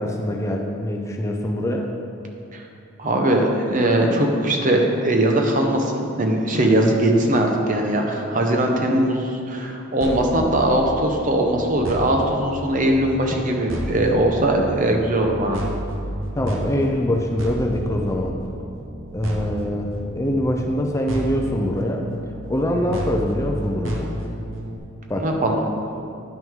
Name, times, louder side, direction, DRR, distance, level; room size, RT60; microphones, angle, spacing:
voice 1, 0.0-1.9 16.4-18.4 19.1-22.0 22.5-24.1 25.1-25.3, left 1 dB, 15° left, 1 dB, 0.5 m, -24 dB
voice 2, 3.0-15.6 25.1-25.6, right 1 dB, 40° right, 2 dB, 0.9 m, -20 dB
sound 1, 10.0-24.8, equal, 85° right, 1.0 m, -32 dB
10.5 x 6.1 x 3.6 m, 2.5 s
head